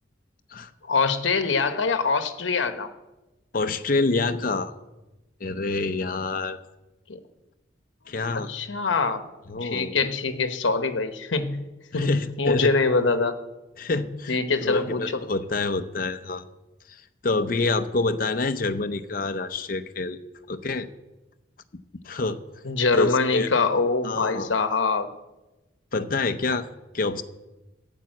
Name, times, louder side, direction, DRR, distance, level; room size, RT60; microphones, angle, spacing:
voice 1, 0.9-2.9 7.1-7.2 8.3-9.3 9.6-11.7 11.9-13.3 14.3-15.2 22.6-25.1, left 4 dB, 80° left, 9 dB, 1.0 m, -24 dB
voice 2, 3.5-4.7 5.4-6.6 8.1-8.5 9.5-10.0 11.9-12.7 13.8-16.5 16.9-20.2 20.5-20.9 22.0-22.4 22.9-23.5 24.0-24.5 25.9-26.7 26.9-27.2, left 3 dB, 45° left, 9 dB, 0.6 m, -27 dB
8.8 x 8.4 x 7.7 m, 1.0 s
head